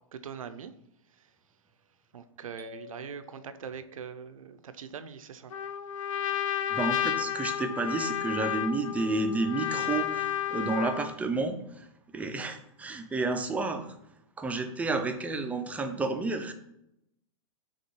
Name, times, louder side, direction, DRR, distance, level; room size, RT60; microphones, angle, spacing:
voice 1, 0.1-0.7 2.1-5.5, right 7 dB, 80° right, 11 dB, 0.4 m, -42 dB
sound 1, 2.6-4.5, left 9 dB, 15° left, 0.7 m, -51 dB
Trumpet, 5.5-11.2, left 10 dB, 70° left, 0.4 m, -32 dB
voice 2, 6.7-11.9 12.1-14.0 14.4-16.5, right 3 dB, 10° right, 7 dB, 0.3 m, -31 dB
5.8 x 2.4 x 3.0 m, 0.81 s
hypercardioid pair, 110°, 17 cm